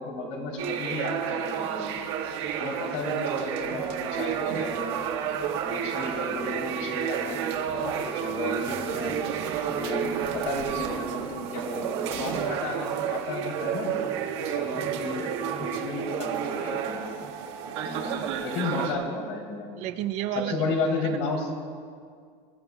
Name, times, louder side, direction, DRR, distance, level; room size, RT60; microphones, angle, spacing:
voice 1, 0.0-1.9 2.6-4.9 5.6-7.4 7.7-9.2 9.7-13.9 14.4-15.3 15.6-17.0 17.8-18.2 18.4-19.7 20.3-21.5, left 3 dB, 65° left, -1 dB, 3.7 m, -33 dB
sound 1, 0.6-18.9, right 8 dB, 85° right, 1.9 m, -30 dB
voice 2, 15.6-15.9 19.8-20.7 21.0-21.2, right 11 dB, 50° right, 9 dB, 0.6 m, -33 dB
26.0 x 14.0 x 2.4 m, 2.2 s
cardioid pair, 160°, 14 cm